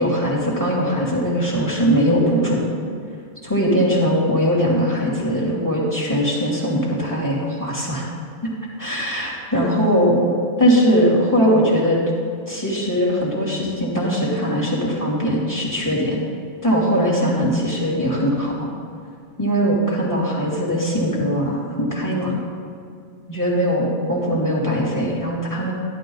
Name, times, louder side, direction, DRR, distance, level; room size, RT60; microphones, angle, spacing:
voice 1, 0.0-2.6 3.4-8.0 8.8-10.3 10.6-12.0 12.5-16.2 16.6-18.7 19.4-22.4 23.3-25.7, equal, 10° left, -4 dB, 2.7 m, -20 dB
13.0 x 12.0 x 3.9 m, 2.3 s
omnidirectional pair, 1.5 m